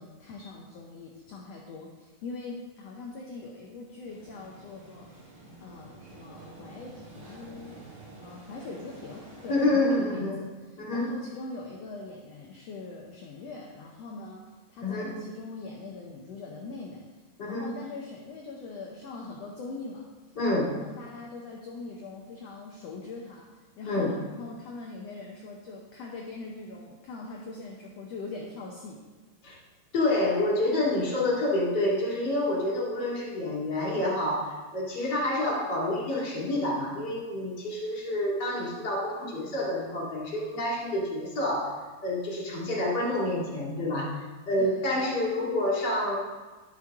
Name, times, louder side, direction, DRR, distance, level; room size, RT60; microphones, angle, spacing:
voice 1, 0.0-5.1 5.6-7.8 8.2-17.0 17.4-20.1 20.5-23.5 23.8-29.0 44.6-44.9, left 3 dB, 80° left, -1 dB, 1.4 m, -42 dB
sound 1, 4.0-9.7, right 2 dB, 75° right, 4.3 m, -49 dB
voice 2, 9.5-10.4 10.8-11.1 14.8-15.2 17.4-17.7 20.4-20.8 23.9-24.2 29.4-29.6 29.9-44.2 44.5-46.2, left 1 dB, 35° left, -7 dB, 2.3 m, -28 dB
11.0 x 6.5 x 3.5 m, 1.3 s
omnidirectional pair, 4.0 m